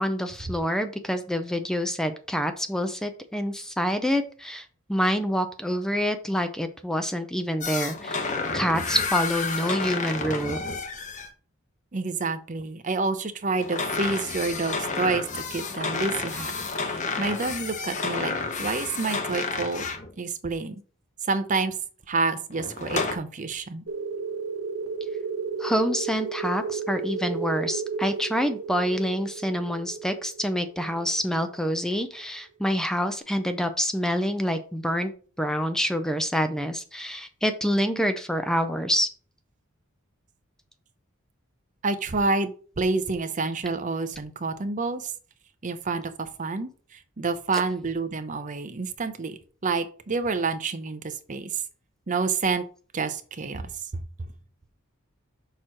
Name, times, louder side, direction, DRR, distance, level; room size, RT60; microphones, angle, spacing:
voice 1, 0.0-8.3 8.5-10.6 25.6-35.1 35.4-39.1 47.5-47.6, equal, 5° left, 8 dB, 0.5 m, -27 dB
sound 1, 7.6-11.3 13.5-20.1 22.5-23.2, left 4 dB, 35° left, 1.0 m, -30 dB
voice 2, 11.9-15.2 15.5-16.5 16.8-18.3 18.6-19.9 20.2-20.8 21.3-21.7 22.1-23.8 41.8-45.1 45.6-46.7 47.2-51.5 52.1-52.7 52.9-54.0, right 3 dB, 35° right, 10 dB, 0.7 m, -28 dB
sound 2, 23.9-32.2, right 5 dB, 70° right, 1.0 m, -33 dB
6.5 x 3.1 x 5.8 m, 0.40 s
head